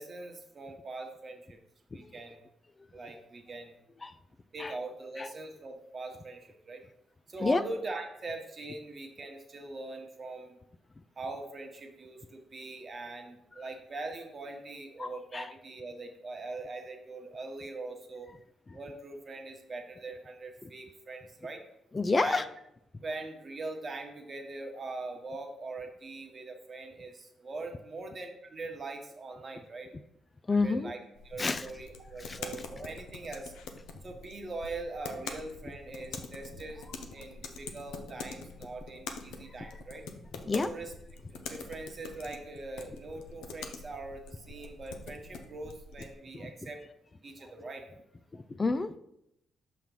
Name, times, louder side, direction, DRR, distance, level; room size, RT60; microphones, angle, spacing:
voice 1, 0.0-1.6 1.9-2.4 2.9-3.8 4.5-6.8 7.3-10.6 11.2-18.3 18.7-21.6 22.2-22.4 23.0-29.9 30.5-31.0 31.2-33.5 34.0-36.8 37.1-40.0 40.6-40.9 41.3-46.8 47.2-47.8, right 2 dB, 45° right, 3 dB, 1.1 m, -42 dB
voice 2, 15.0-15.5 20.6-20.7 21.9-22.4 30.5-30.9 31.4-31.7 32.2-32.4 35.6-35.7 40.4-40.7 46.0-46.1 46.3-46.5 48.3-49.0, left 3 dB, 30° left, 13 dB, 0.4 m, -30 dB
sound 1, 31.2-46.1, left 4 dB, 80° left, 0.5 m, -45 dB
5.8 x 3.1 x 5.3 m, 0.80 s
supercardioid pair, 55°, 0 cm